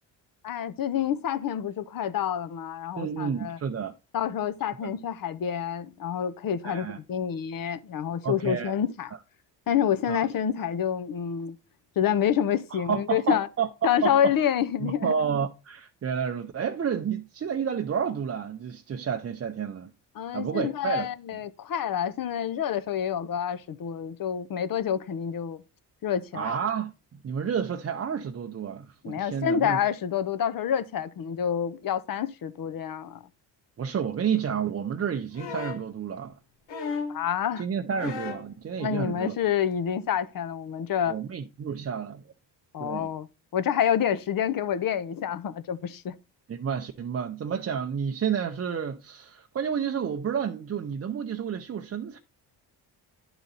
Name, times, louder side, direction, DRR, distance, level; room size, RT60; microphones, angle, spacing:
voice 1, 0.4-3.6 4.1-9.1 9.7-11.6 12.0-13.5 13.8-15.1 20.2-25.6 26.0-26.5 29.0-33.2 37.1-37.6 38.8-41.1 42.7-43.3 43.5-46.2, left 9 dB, 55° left, 0.7 m, -28 dB
voice 2, 3.0-3.9 4.8-4.9 6.6-7.0 8.2-8.7 9.1-9.2 10.1-10.3 12.7-14.3 14.8-19.9 20.3-21.1 26.3-29.8 33.8-36.4 37.6-39.4 41.0-42.2 42.8-43.1 46.5-52.2, right 7 dB, 35° right, 0.6 m, -30 dB
sound 1, 35.3-35.9 36.7-37.2 38.0-38.5 39.7-39.8, left 5 dB, 85° left, 1.3 m, -34 dB
10.0 x 4.0 x 4.0 m
cardioid pair, 80°, 42 cm